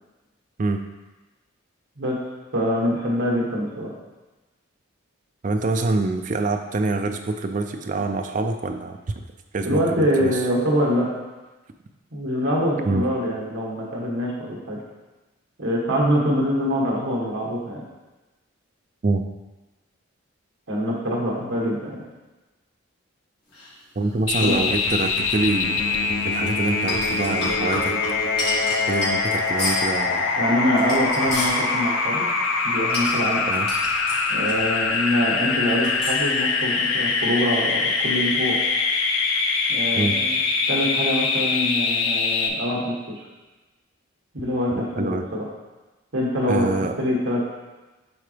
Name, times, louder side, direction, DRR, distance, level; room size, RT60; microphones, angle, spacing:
voice 1, 2.5-3.9 9.7-11.1 12.1-14.8 15.6-17.8 20.7-22.0 24.4-24.7 30.4-32.3 32.6-33.4 34.3-38.6 39.7-40.4 40.7-43.2 44.3-45.4 46.1-46.7 47.0-47.4, equal, 65° right, -4 dB, 1.4 m, -24 dB
voice 2, 5.4-9.0 9.5-10.4 12.9-13.1 19.0-19.2 24.0-26.0 26.3-28.0 28.9-30.3 33.5-33.7 40.0-40.1 44.7-45.3 46.5-47.0, right 3 dB, 35° right, 6 dB, 0.4 m, -25 dB
sound 1, 23.5-25.4 26.6-30.0 30.6-31.6 32.9-35.0 35.2-35.3 35.8-36.3, left 2 dB, 50° left, 1.9 m, -31 dB
sound 2, 24.3-42.5, left 4 dB, 65° left, 0.5 m, -23 dB
8.0 x 3.7 x 3.4 m, 1.1 s
head